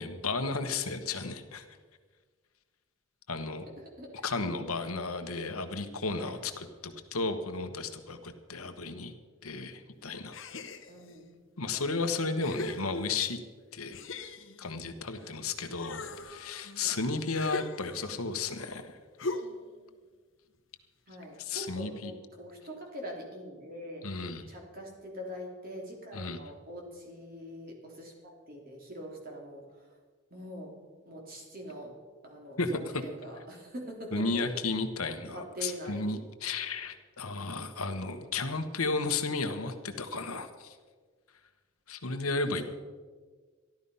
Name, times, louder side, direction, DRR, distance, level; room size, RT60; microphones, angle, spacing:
voice 1, 0.0-1.6 3.3-3.7 4.2-9.1 9.4-10.4 11.6-13.4 13.7-14.0 14.6-18.9 21.4-22.1 24.0-24.5 26.1-26.4 32.6-33.0 34.1-40.8 41.9-42.6, left 3 dB, 85° left, 7 dB, 1.3 m, -33 dB
voice 2, 3.8-4.2 6.2-6.4 10.9-11.3 11.7-12.5 15.1-15.4 16.8-16.9 21.1-24.0 24.5-29.9 30.3-30.7 31.1-32.0 32.2-34.3 34.5-34.6 35.3-36.2, equal, 45° right, 0 dB, 3.2 m, -44 dB
sound 1, 10.3-11.2 11.8-11.9 12.4-13.4 13.9-15.4 15.7-18.2 19.2-19.8, left 2 dB, 60° left, 1.0 m, -40 dB
14.0 x 12.0 x 5.5 m, 1.5 s
head